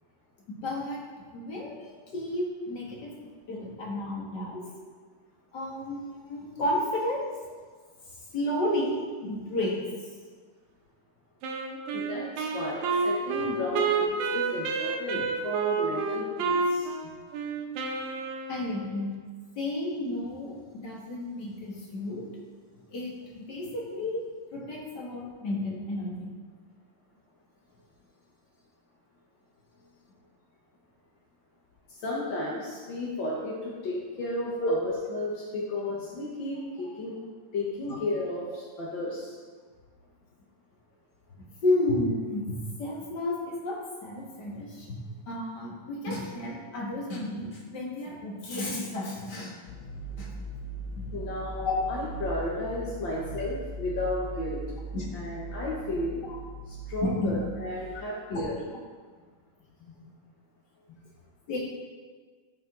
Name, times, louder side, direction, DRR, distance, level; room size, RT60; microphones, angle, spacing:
voice 1, 0.5-1.0 1.3-1.9 2.1-3.1 3.5-4.6 5.5-7.3 8.3-9.7 13.7-13.8 15.1-15.2 18.5-19.1 19.6-22.2 22.9-24.2 24.5-26.3 34.6-34.8 41.4-45.0 45.3-49.5 50.2-50.3 51.5-51.7 54.9-55.1 56.2-56.4 57.0-57.3 58.3-58.5 61.5-61.6, left 1 dB, 40° left, -3 dB, 1.9 m, -32 dB
Wind instrument woodwind instrument, 11.4-18.9, right 4 dB, 75° right, 2.2 m, -29 dB
voice 2, 11.9-16.9 32.0-37.2 37.5-39.4 51.1-54.6 55.1-56.2 56.7-58.5 59.8-59.9, left 2 dB, 55° left, -5 dB, 1.3 m, -33 dB
sound 1, 49.7-57.9, right 2 dB, 75° left, 2.4 m, -39 dB
14.0 x 5.6 x 3.9 m, 1.6 s
omnidirectional pair, 3.7 m